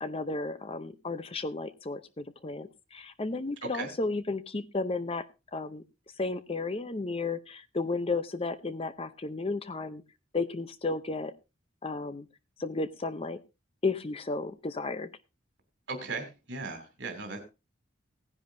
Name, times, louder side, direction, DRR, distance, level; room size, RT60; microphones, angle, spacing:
voice 1, 0.0-5.2 5.5-5.8 6.2-10.0 10.3-11.3 11.8-12.3 12.6-13.4 13.8-15.1, left 3 dB, 30° left, 12 dB, 0.6 m, -33 dB
voice 2, 15.9-17.4, right 3 dB, 65° right, 4 dB, 2.7 m, -37 dB
17.0 x 10.5 x 2.7 m, 0.27 s
head